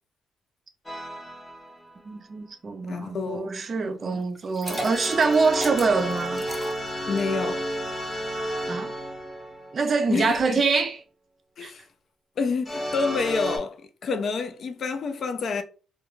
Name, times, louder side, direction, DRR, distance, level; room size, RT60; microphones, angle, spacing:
sound 1, 0.9-2.0 4.7-10.3 12.7-13.6, equal, 20° left, 0.7 m, -32 dB
voice 1, 2.0-6.5 8.7-8.9 9.7-11.0 11.6-11.7, right 4 dB, 40° right, 0.5 m, -25 dB
voice 2, 2.9-3.6 4.0-4.2 7.1-7.7 10.1-10.6 11.6-11.8 12.4-15.6, left 4 dB, 55° left, 0.4 m, -28 dB
Liquid, 4.3-7.4, right 1 dB, 10° right, 0.9 m, -37 dB
2.4 x 2.3 x 3.0 m
cardioid pair, 90°, 0 cm